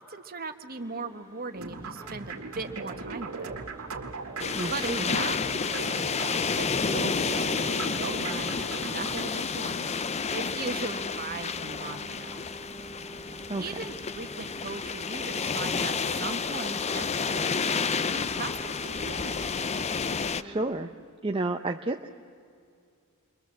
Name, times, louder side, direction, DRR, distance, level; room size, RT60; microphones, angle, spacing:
voice 1, 0.0-3.5 4.7-8.6 8.8-9.9 10.3-12.4 13.6-17.8 18.1-19.4, right 4 dB, 45° right, 6 dB, 1.5 m, -38 dB
sound 1, 0.7-20.6, right 1 dB, 10° left, 7.7 m, -48 dB
sound 2, 1.5-9.2, right 4 dB, 65° right, 2.0 m, -39 dB
sound 3, 4.4-20.4, left 5 dB, 30° left, 0.5 m, -30 dB
voice 2, 4.5-5.1 13.5-13.6 20.4-20.9 21.2-22.1, right 2 dB, 25° right, 4 dB, 0.7 m, -30 dB
29.5 x 23.5 x 7.6 m, 2.3 s
head